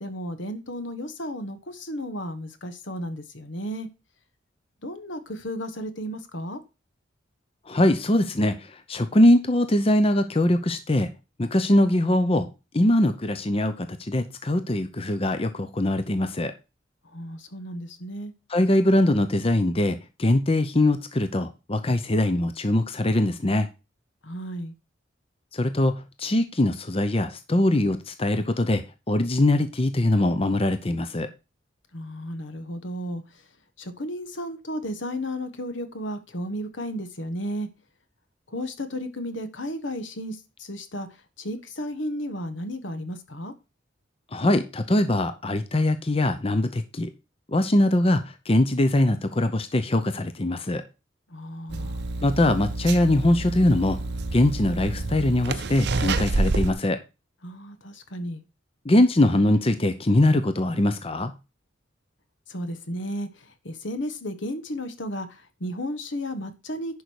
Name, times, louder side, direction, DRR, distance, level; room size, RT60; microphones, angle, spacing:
voice 1, 0.0-3.9 4.8-6.6 17.0-18.3 24.2-24.7 31.9-33.4 33.8-37.7 38.5-41.1 41.4-43.5 51.3-52.0 57.4-58.4 62.5-67.0, equal, 75° left, 1.4 m, -33 dB
voice 2, 7.7-11.1 11.4-12.5 12.7-16.5 18.5-23.7 25.5-31.3 44.3-47.1 47.5-50.8 52.2-54.0 54.3-57.0 58.9-61.3, left 1 dB, 30° left, 0.7 m, -22 dB
sound 1, 51.7-56.7, right 3 dB, 60° right, 0.7 m, -28 dB
11.0 x 5.3 x 4.7 m
head